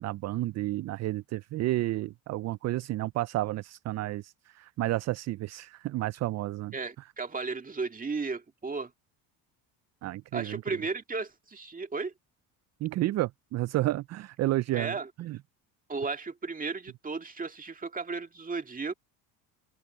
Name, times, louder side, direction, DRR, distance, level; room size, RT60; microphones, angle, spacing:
voice 1, 0.0-6.7 10.0-10.8 12.8-15.4, right 16 dB, 40° right, 0.4 m, -31 dB
voice 2, 6.7-8.9 10.3-12.1 14.7-15.1 15.9-18.9, right 4 dB, 20° right, 1.9 m, -34 dB
open air
supercardioid pair, 100°, 43 cm